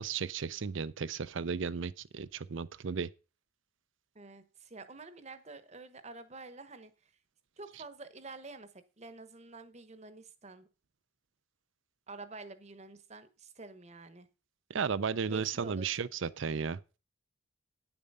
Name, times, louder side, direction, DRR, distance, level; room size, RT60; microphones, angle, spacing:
voice 1, 0.0-3.1 14.7-16.8, right 6 dB, 65° right, 0.5 m, -34 dB
voice 2, 4.1-7.1 7.6-10.7 12.1-14.3 15.3-15.9 16.2-16.3, right 3 dB, 35° right, 1.0 m, -49 dB
9.7 x 7.1 x 5.4 m
head